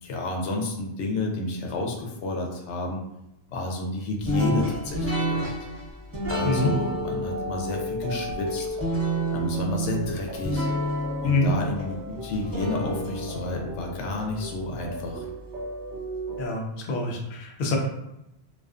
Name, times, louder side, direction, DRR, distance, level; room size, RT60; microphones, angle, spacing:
voice 1, 0.0-3.0 3.5-5.5 6.2-8.7 9.3-10.7 11.2-15.3, left 2 dB, 85° left, 1 dB, 0.9 m, -30 dB
sound 1, 4.2-15.3, right 1 dB, 15° right, 1.0 m, -30 dB
sound 2, 6.4-16.5, left 1 dB, 55° right, 0.5 m, -36 dB
voice 2, 16.4-17.8, left 3 dB, 60° left, 0 dB, 0.6 m, -25 dB
2.4 x 2.3 x 2.4 m, 0.86 s
omnidirectional pair, 1.1 m